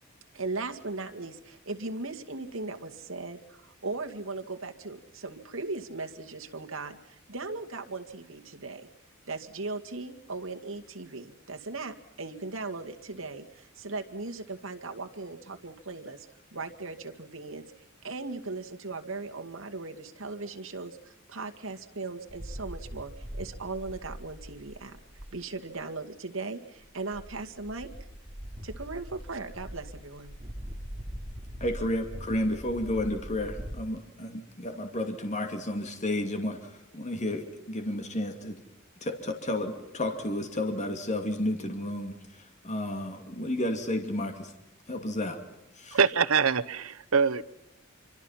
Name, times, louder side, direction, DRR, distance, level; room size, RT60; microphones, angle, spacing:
voice 1, 0.3-8.9 9.3-16.3 16.5-17.6 18.0-25.0 25.3-27.9 28.6-30.3, right 3 dB, 70° right, 5 dB, 2.2 m, -38 dB
sound 1, 22.3-25.4 25.8-25.9 26.8-26.9 27.1-33.8, equal, 25° right, 3.1 m, -42 dB
voice 2, 31.6-38.6 39.0-44.5 44.9-45.4 45.8-46.0, left 1 dB, 35° left, 5 dB, 2.5 m, -32 dB
voice 3, 45.9-47.4, right 6 dB, 85° right, 17 dB, 1.0 m, -24 dB
26.0 x 25.0 x 5.8 m, 0.90 s
head